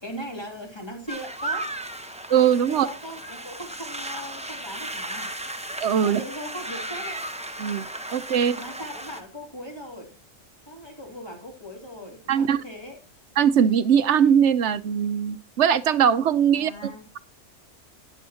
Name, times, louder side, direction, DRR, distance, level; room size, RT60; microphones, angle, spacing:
voice 1, 0.0-1.7 2.7-5.3 6.0-7.2 8.6-10.2 10.7-13.0 16.5-17.0, equal, 20° left, 3.1 m, -39 dB
sound 1, 1.1-9.2, right 1 dB, 5° right, 0.8 m, -35 dB
voice 2, 2.3-2.9 5.8-6.2 7.6-7.9 8.1-8.6 12.3-12.6 13.4-16.7, right 8 dB, 65° right, 1.0 m, -20 dB
12.5 x 10.0 x 2.9 m
omnidirectional pair, 1.4 m